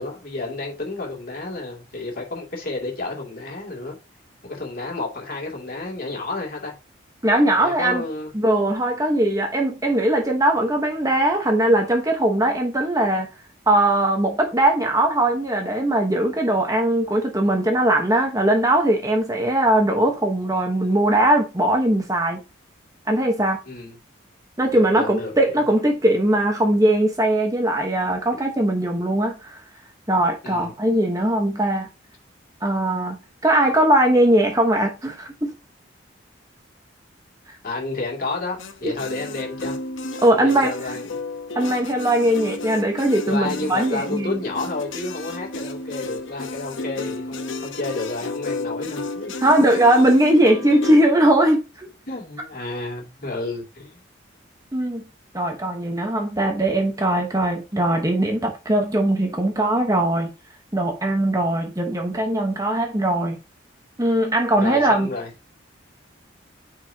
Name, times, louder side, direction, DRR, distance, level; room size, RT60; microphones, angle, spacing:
voice 1, 0.0-4.0 4.4-6.7 7.6-8.3 23.7-24.0 24.7-25.6 30.4-30.7 37.6-39.8 40.3-41.2 43.2-49.7 52.1-54.0 56.0-56.1 64.6-65.3, left 3 dB, 50° left, 2.7 m, -31 dB
voice 2, 7.2-8.0 8.3-13.3 13.7-22.4 23.1-23.6 24.6-29.6 30.1-31.9 32.6-33.2 33.4-35.5 38.8-38.9 40.2-40.7 41.5-44.4 49.4-51.9 54.7-55.0 55.3-60.3 60.7-63.4 64.0-65.1, right 1 dB, 20° right, 1.1 m, -20 dB
sound 1, 38.6-51.1, left 2 dB, 85° left, 1.0 m, -32 dB
9.5 x 4.8 x 2.8 m
head